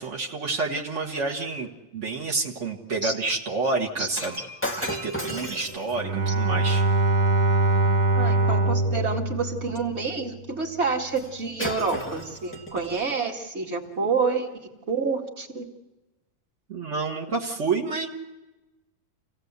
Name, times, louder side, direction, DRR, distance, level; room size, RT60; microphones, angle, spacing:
voice 1, 0.0-4.4 4.8-6.8 16.7-18.1, right 3 dB, 65° right, 0 dB, 0.7 m, -29 dB
Shatter, 4.1-8.5 11.1-11.3 11.6-13.1 13.8-14.0, equal, 15° left, 0.3 m, -36 dB
Bowed string instrument, 5.9-10.3, right 2 dB, 45° right, 2.0 m, -23 dB
voice 2, 8.1-14.5 14.9-15.7, right 4 dB, 25° right, 1 dB, 1.7 m, -28 dB
28.0 x 17.0 x 8.1 m, 1.1 s
omnidirectional pair, 4.0 m